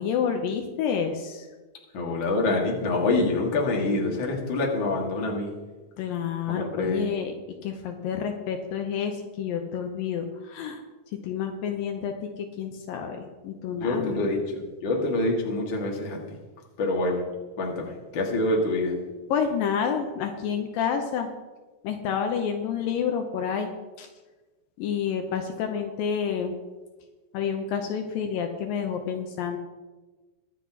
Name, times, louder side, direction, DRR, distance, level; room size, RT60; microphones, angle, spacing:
voice 1, 0.0-1.5 6.0-7.3 7.6-10.8 11.2-14.2 19.3-21.3 21.8-24.1 24.8-26.6 27.3-29.6, left 7 dB, 80° left, 4 dB, 2.4 m, -29 dB
voice 2, 1.9-5.5 6.6-7.1 13.7-16.2 16.8-17.2 17.6-19.0, left 2 dB, 40° left, -1 dB, 2.1 m, -26 dB
23.0 x 8.2 x 2.9 m, 1.3 s
omnidirectional pair, 4.3 m